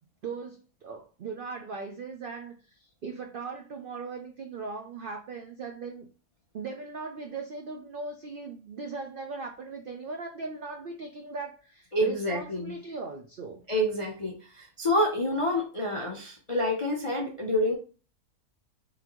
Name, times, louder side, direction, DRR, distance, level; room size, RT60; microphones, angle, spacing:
voice 1, 0.2-6.0 6.5-13.6, right 4 dB, 75° right, 3 dB, 0.5 m, -39 dB
voice 2, 11.9-12.7 13.7-17.7, left 1 dB, 50° left, -1 dB, 0.3 m, -28 dB
3.8 x 3.3 x 2.9 m, 0.36 s
omnidirectional pair, 1.6 m